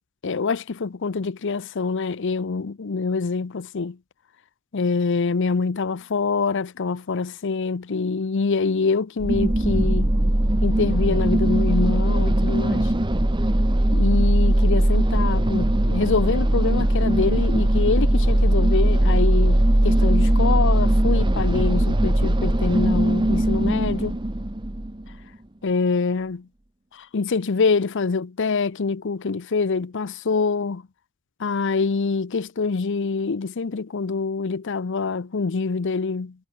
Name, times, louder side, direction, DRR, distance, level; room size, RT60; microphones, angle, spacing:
voice 1, 0.2-4.0 4.7-10.2 10.6-12.9 13.9-24.2 25.6-26.5 26.9-30.8 31.4-36.3, left 4 dB, 55° left, 0.6 m, -25 dB
sound 1, 9.2-25.1, right 1 dB, 20° right, 1.1 m, -20 dB
head